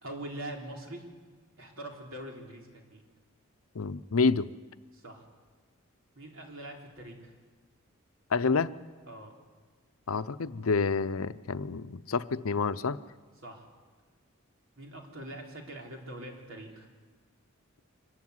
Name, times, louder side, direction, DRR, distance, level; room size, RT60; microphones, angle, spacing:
voice 1, 0.0-1.1 1.6-3.0 4.9-5.2 6.2-7.3 9.1-9.3 13.4-13.7 14.8-16.9, right 1 dB, 65° right, 1 dB, 3.8 m, -43 dB
voice 2, 3.7-4.5 8.3-8.7 10.1-13.0, left 4 dB, 80° left, 14 dB, 0.7 m, -28 dB
24.5 x 15.0 x 9.6 m, 1.4 s
head